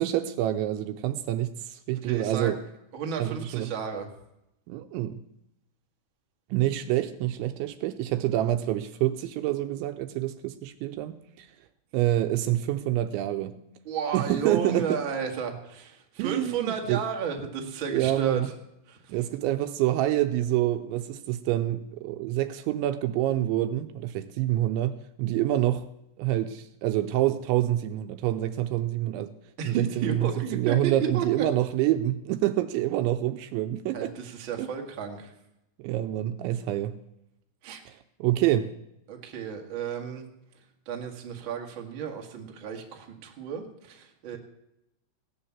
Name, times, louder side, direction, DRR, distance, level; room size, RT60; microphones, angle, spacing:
voice 1, 0.0-2.6 3.2-3.7 4.7-5.2 6.5-11.5 11.9-13.6 14.1-15.0 16.2-17.0 17.9-18.5 19.1-25.9 26.2-29.3 29.6-34.1 34.6-34.7 35.8-37.0 37.9-38.7, right 13 dB, 80° right, 2.8 m, -27 dB
voice 2, 2.0-2.5 2.9-4.1 13.8-18.4 18.9-19.2 29.6-31.2 33.9-35.3 37.6-37.8 39.1-40.3 40.8-44.4, right 6 dB, 60° right, 1.3 m, -33 dB
17.0 x 9.7 x 7.3 m
omnidirectional pair, 5.7 m